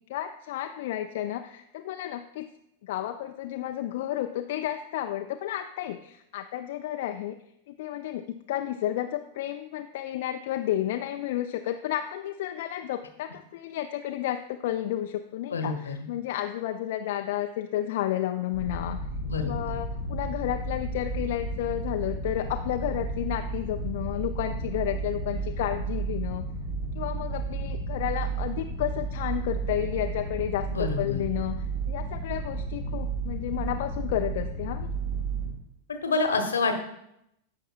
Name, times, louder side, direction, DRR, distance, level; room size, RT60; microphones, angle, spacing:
voice 1, 0.1-2.5 2.8-7.4 7.7-19.0 19.4-26.5 27.0-34.9, left 12 dB, 55° left, 5 dB, 0.4 m, -32 dB
voice 2, 15.5-16.0 19.2-19.7 30.7-31.2 35.9-36.7, left 4 dB, 70° left, 7 dB, 0.9 m, -27 dB
sound 1, 18.5-35.5, right 3 dB, 50° right, 2.7 m, -32 dB
14.5 x 5.4 x 2.3 m, 0.79 s
figure-of-eight pair, 90°, 0 cm